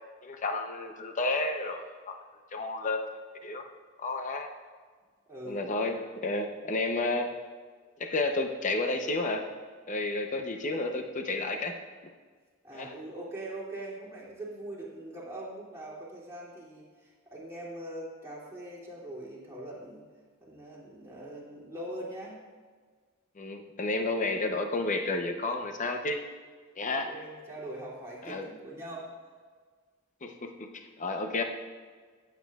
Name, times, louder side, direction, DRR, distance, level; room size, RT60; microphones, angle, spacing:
voice 1, 0.2-2.2 2.5-3.1 3.4-3.7 4.0-4.5 5.4-7.4 8.0-9.5 9.9-11.7 12.7-12.9 23.4-26.2 26.8-27.1 28.2-28.5 30.2-31.4, left 2 dB, 35° left, 5 dB, 0.7 m, -31 dB
voice 2, 5.3-5.6 12.6-20.0 20.4-22.4 26.9-29.1, right 1 dB, 15° right, -7 dB, 2.6 m, -42 dB
15.0 x 8.2 x 2.3 m, 1.6 s
head